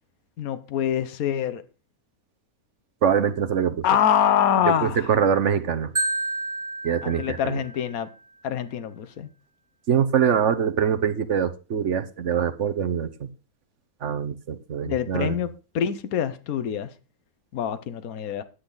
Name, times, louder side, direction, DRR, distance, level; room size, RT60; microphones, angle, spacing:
voice 1, 0.4-1.6 3.8-5.1 7.0-8.1 8.4-9.3 14.9-16.9 17.5-18.4, left 9 dB, 70° left, 1.4 m, -25 dB
voice 2, 3.0-3.8 4.8-5.9 6.8-7.6 9.9-13.1 14.0-15.4, right 7 dB, 55° right, 1.1 m, -23 dB
Marimba xylophone, 6.0-8.0, right 2 dB, 20° right, 1.6 m, -30 dB
10.5 x 9.8 x 3.9 m
omnidirectional pair, 1.6 m